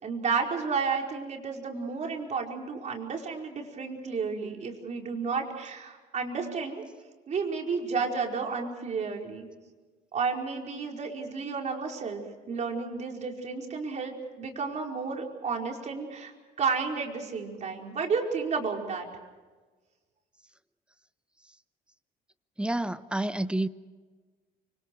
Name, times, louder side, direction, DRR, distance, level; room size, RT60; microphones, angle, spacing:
voice 1, 0.0-6.8 7.3-9.5 10.1-16.3 16.6-19.1, right 5 dB, 45° right, 4.9 m, -32 dB
voice 2, 22.6-23.7, right 1 dB, 5° right, 1.0 m, -29 dB
30.0 x 25.5 x 4.7 m
cardioid pair, 110°, 17 cm